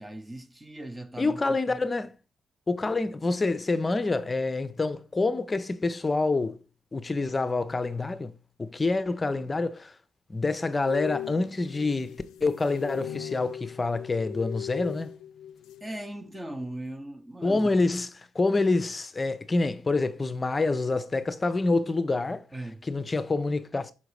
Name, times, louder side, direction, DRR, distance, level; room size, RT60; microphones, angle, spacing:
voice 1, 0.0-1.8 15.8-17.8 22.5-22.9, right 1 dB, 15° right, 0.9 m, -39 dB
voice 2, 1.2-2.1 2.7-6.6 6.9-8.3 8.6-9.9 10.3-15.1 17.4-22.4 22.9-23.9, left 3 dB, 25° left, 0.7 m, -27 dB
sound 1, 10.8-16.0 16.2-16.5, left 11 dB, 90° left, 0.4 m, -39 dB
5.7 x 3.9 x 4.8 m
cardioid pair, 90°, 0 cm